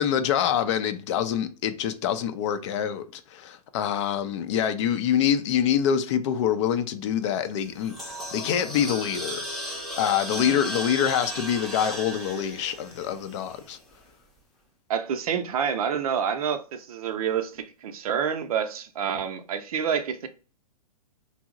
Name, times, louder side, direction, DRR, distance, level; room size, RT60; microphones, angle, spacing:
voice 1, 0.0-9.5 10.0-13.8, left 9 dB, 50° left, 0.4 m, -25 dB
sound 1, 7.6-13.9, equal, ahead, 0.6 m, -36 dB
voice 2, 10.3-10.6 14.9-20.3, right 7 dB, 65° right, 0.5 m, -28 dB
2.9 x 2.0 x 3.5 m
hypercardioid pair, 125°, 20 cm